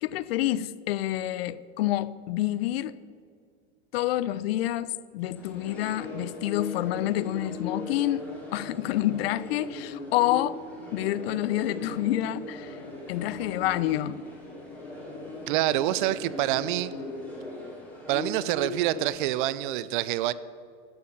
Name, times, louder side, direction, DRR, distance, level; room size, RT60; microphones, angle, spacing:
voice 1, 0.0-3.0 3.9-10.6 10.9-12.8 13.1-14.2, left 14 dB, 65° left, 0.5 m, -28 dB
sound 1, 5.3-19.1, left 2 dB, 5° left, 2.2 m, -39 dB
voice 2, 15.5-16.9 18.1-20.3, right 15 dB, 50° right, 0.4 m, -26 dB
11.5 x 5.4 x 6.5 m
supercardioid pair, 135°, 33 cm